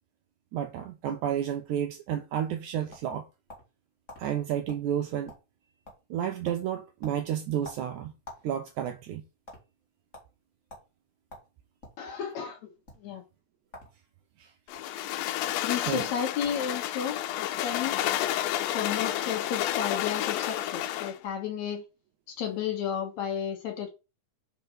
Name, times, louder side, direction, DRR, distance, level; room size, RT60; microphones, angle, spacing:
voice 1, 0.5-3.3 4.2-5.3 6.1-8.2 8.4-9.3 14.4-14.5 15.9-16.1, right 10 dB, 80° right, 1.8 m, -31 dB
sound 1, 2.9-3.8 4.1-4.2 4.7-4.8 5.1-5.6 5.8-6.2 6.4-6.6 7.0-8.5 8.8-9.6 10.1-10.3 10.7-10.9 11.3-12.0 12.8-13.0 13.7-13.9 14.2-14.8 15.5-15.6 15.9-16.1 16.4-16.7, left 1 dB, 25° left, 2.2 m, -47 dB
voice 2, 12.0-12.7 13.0-13.2 15.6-18.0 18.7-21.8 22.4-23.9, left 8 dB, 65° left, 2.1 m, -33 dB
sound 2, 14.7-21.2, left 13 dB, 85° left, 2.3 m, -30 dB
5.0 x 4.7 x 6.0 m
omnidirectional pair, 4.0 m